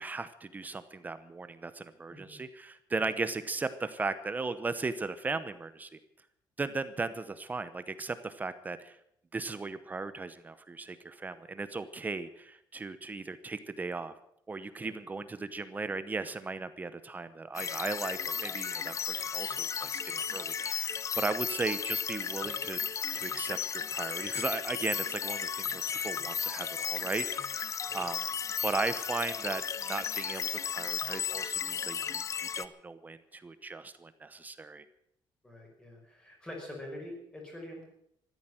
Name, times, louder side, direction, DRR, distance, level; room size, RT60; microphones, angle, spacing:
voice 1, 0.0-6.0 6.6-9.0 9.3-14.1 14.5-22.8 23.1-28.2 28.6-34.8, right 3 dB, 20° right, 12 dB, 0.8 m, -37 dB
sound 1, 17.5-32.6, left 7 dB, 35° left, 0.7 m, -34 dB
voice 2, 35.4-37.9, left 1 dB, 10° left, 0 dB, 5.4 m, -45 dB
15.0 x 12.5 x 7.7 m, 0.73 s
cardioid pair, 170°, 9 cm